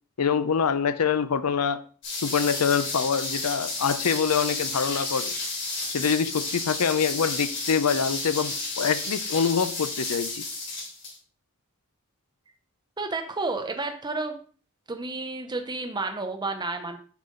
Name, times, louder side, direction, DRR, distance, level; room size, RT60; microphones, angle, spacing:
voice 1, 0.2-1.8 2.2-5.4 5.9-10.4, left 6 dB, 80° left, 0.6 m, -25 dB
sound 1, 2.0-11.2, left 3 dB, 55° left, 3.8 m, -32 dB
voice 2, 13.0-14.4 14.9-17.0, right 3 dB, 20° right, 0.7 m, -31 dB
7.3 x 5.6 x 3.9 m
head